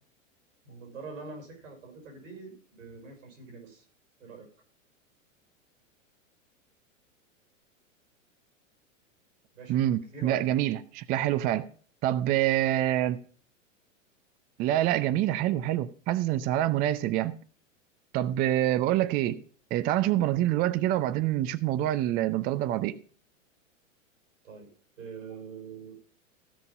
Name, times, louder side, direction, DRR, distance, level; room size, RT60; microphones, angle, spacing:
voice 1, 0.6-3.9 4.2-4.5 9.5-9.8 10.1-10.5 24.4-24.7 25.0-26.0, right 4 dB, 80° right, 5.6 m, -44 dB
voice 2, 9.7-11.7 12.0-13.2 14.6-17.4 18.1-19.4 19.7-23.0, right 13 dB, 25° right, 0.4 m, -26 dB
15.5 x 5.3 x 5.3 m
hypercardioid pair, 105°, 39 cm